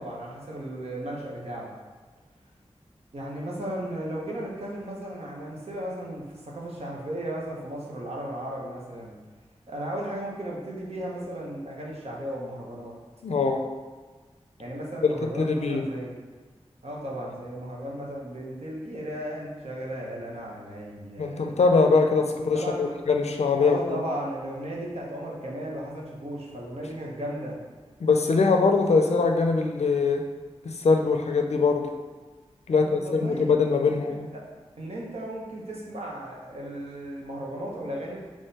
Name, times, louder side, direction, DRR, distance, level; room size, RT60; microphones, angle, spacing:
voice 1, 0.0-1.7 3.1-9.1 9.7-13.0 14.6-16.1 16.8-21.6 22.5-22.9 23.5-27.6 32.7-33.4 34.0-34.4 34.7-38.3, right 1 dB, 70° right, -3 dB, 1.0 m, -35 dB
voice 2, 13.2-13.7 15.0-15.9 21.2-24.0 28.0-30.3 30.6-31.9 32.7-34.3, left 4 dB, 85° left, 4 dB, 0.4 m, -22 dB
3.7 x 3.1 x 4.1 m, 1.4 s
wide cardioid pair, 70°, 11 cm